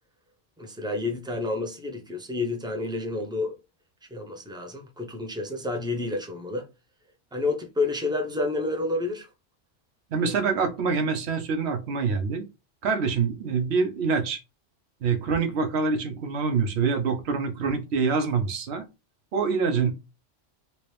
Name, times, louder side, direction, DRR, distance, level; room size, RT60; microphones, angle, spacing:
voice 1, 0.6-3.6 4.1-6.7 7.3-9.3 10.2-10.3, left 2 dB, 5° right, 0.4 m, -29 dB
voice 2, 10.1-12.4 12.8-14.4 15.0-18.8 19.3-19.9, right 5 dB, 65° right, 0.9 m, -25 dB
3.0 x 3.0 x 3.2 m
omnidirectional pair, 1.3 m